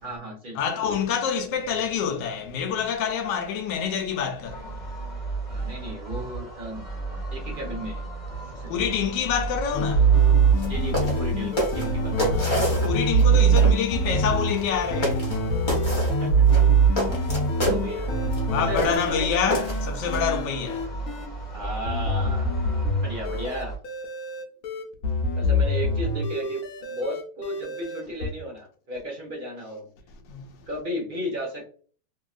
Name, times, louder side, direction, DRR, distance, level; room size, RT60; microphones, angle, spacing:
voice 1, 0.0-0.8 5.5-6.8 7.3-8.1 8.5-8.8 10.6-12.5 16.1-16.6 17.6-18.2 18.5-19.4 19.9-20.1 21.5-22.6 23.0-23.8 25.3-29.9 30.7-31.6, equal, 55° right, 0.5 m, -34 dB
voice 2, 0.5-4.8 8.4-10.1 12.2-15.4 18.5-21.0 30.3-30.5, left 7 dB, 80° left, 1.3 m, -27 dB
sound 1, 4.5-23.8, right 3 dB, 10° right, 1.1 m, -34 dB
sound 2, 9.7-21.3 21.8-28.3, right 3 dB, 65° left, 1.0 m, -23 dB
sound 3, 10.5-10.7 10.9-11.2 11.6-13.3 13.6-13.8 14.6-14.7 15.0-15.4 15.7-16.1 16.5-17.8 18.3-18.4 18.8-19.1 19.5-20.2, equal, 30° left, 1.1 m, -27 dB
3.0 x 2.7 x 2.4 m
omnidirectional pair, 1.9 m